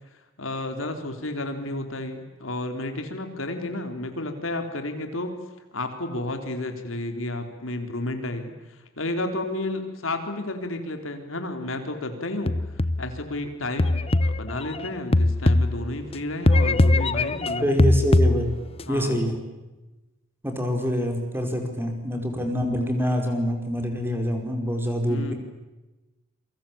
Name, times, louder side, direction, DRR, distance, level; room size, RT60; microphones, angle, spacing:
voice 1, 0.4-5.4 5.7-8.5 9.0-12.5 13.0-17.7 18.9-19.2 25.1-25.3, left 2 dB, 75° left, 6 dB, 3.8 m, -31 dB
sound 1, 12.5-13.2 13.8-16.1 16.5-18.8, left 2 dB, 30° left, 0.9 m, -21 dB
voice 2, 17.6-18.5 18.9-19.4 20.4-25.3, equal, 10° right, 4 dB, 5.1 m, -25 dB
28.0 x 24.0 x 8.7 m, 1.1 s
head